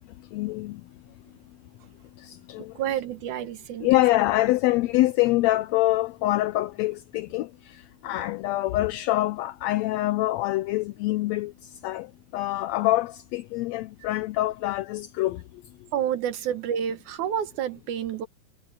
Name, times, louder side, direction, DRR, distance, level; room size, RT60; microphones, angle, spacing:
voice 1, 0.3-0.8 2.2-2.7 3.8-12.1 12.3-15.4, left 17 dB, 80° left, 1.6 m, -25 dB
voice 2, 2.6-3.9 15.9-18.3, right 9 dB, 80° right, 2.8 m, -29 dB
omnidirectional pair, 3.4 m